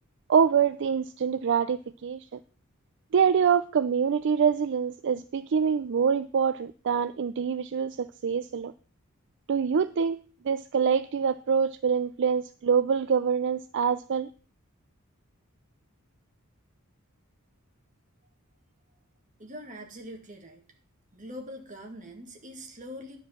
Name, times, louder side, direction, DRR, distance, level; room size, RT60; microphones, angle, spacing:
voice 1, 0.3-2.2 3.1-8.7 9.5-10.2 10.4-14.3, right 6 dB, 60° right, 13 dB, 0.4 m, -25 dB
voice 2, 19.4-20.6 21.1-23.2, equal, 35° right, 3 dB, 2.1 m, -43 dB
11.0 x 5.0 x 7.2 m, 0.41 s
head